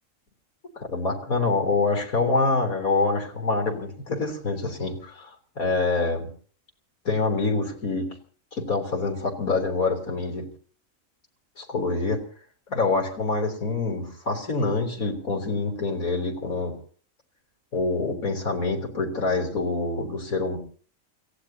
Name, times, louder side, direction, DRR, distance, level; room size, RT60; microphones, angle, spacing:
voice 1, 0.8-6.3 7.1-8.1 8.5-10.5 11.6-12.2 12.7-16.7 17.7-20.6, left 3 dB, 85° left, 2 dB, 4.0 m, -26 dB
29.0 x 16.0 x 2.9 m, 0.43 s
omnidirectional pair, 1.5 m